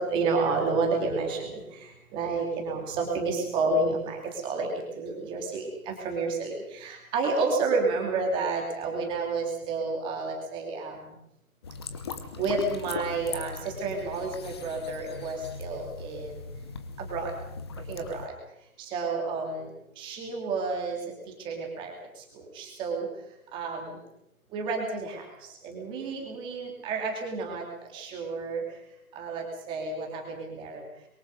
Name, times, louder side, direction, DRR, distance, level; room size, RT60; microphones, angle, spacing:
voice 1, 0.0-1.6 2.1-11.0 12.4-16.4 17.1-17.3 17.9-18.3 18.9-19.7 20.0-21.0 21.4-21.9 22.5-23.1 23.5-24.0 24.5-25.2 25.6-27.6 27.9-28.6 29.2-30.8, right 3 dB, 10° right, 1 dB, 2.8 m, -30 dB
sound 1, 11.6-18.3, left 4 dB, 20° left, 1.0 m, -39 dB
23.5 x 22.5 x 5.3 m, 0.81 s
figure-of-eight pair, 155°, 43 cm